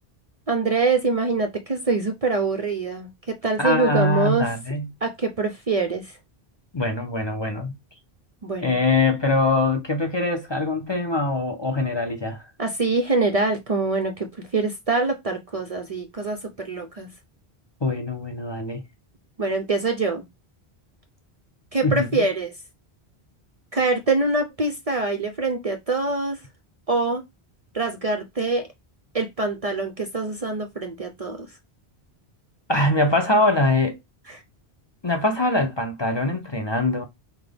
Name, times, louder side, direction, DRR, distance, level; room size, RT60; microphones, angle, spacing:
voice 1, 0.5-4.5 5.0-6.2 8.4-8.8 12.6-17.1 19.4-20.2 21.7-22.5 23.7-26.4 26.9-27.2 27.7-28.7 29.1-31.5 34.3-34.4, right 3 dB, 45° right, 0.5 m, -24 dB
voice 2, 3.6-4.9 6.7-7.7 8.6-12.5 17.8-18.8 21.8-22.3 32.7-34.0 35.0-37.1, left 2 dB, 30° left, 0.6 m, -23 dB
5.8 x 2.2 x 3.4 m
omnidirectional pair, 1.0 m